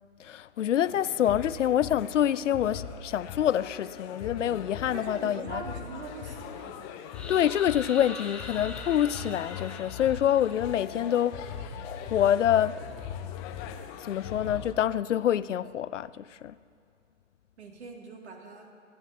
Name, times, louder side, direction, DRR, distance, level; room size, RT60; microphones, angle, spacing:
voice 1, 0.2-5.6 7.3-11.6 11.8-12.8 14.0-16.5, left 10 dB, 80° left, 0.5 m, -26 dB
sound 1, 0.8-14.7, left 7 dB, 20° left, 0.6 m, -40 dB
voice 2, 4.9-6.9 17.6-18.7, right 3 dB, 65° right, 2.3 m, -42 dB
sound 2, 7.1-11.0, left 3 dB, 5° left, 1.0 m, -43 dB
24.0 x 11.5 x 2.8 m
hypercardioid pair, 125°, 37 cm